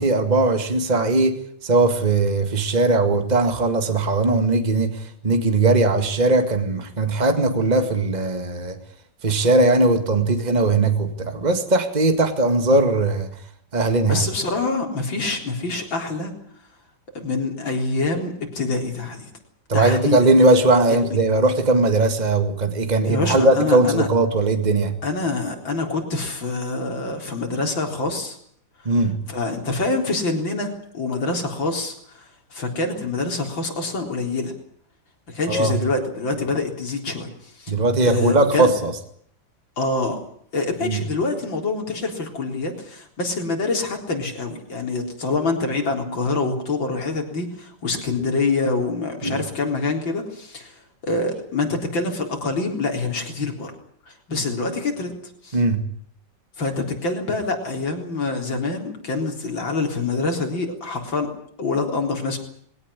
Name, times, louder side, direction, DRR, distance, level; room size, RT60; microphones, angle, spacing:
voice 1, 0.0-8.8 9.2-13.3 13.7-14.2 19.7-24.9 28.9-29.2 35.5-35.8 37.7-38.9 40.8-41.0 49.2-49.4 55.5-55.9, right 2 dB, 20° right, 7 dB, 2.0 m, -19 dB
voice 2, 14.1-16.3 17.1-19.3 19.7-20.3 23.0-24.1 25.0-28.4 29.3-34.5 35.3-37.7 38.0-38.7 39.8-40.2 40.5-53.7 54.1-55.1 55.4-55.6 56.6-61.3 61.6-62.4, left 3 dB, 85° left, 3 dB, 4.6 m, -26 dB
21.0 x 17.5 x 9.9 m, 0.64 s
omnidirectional pair, 2.0 m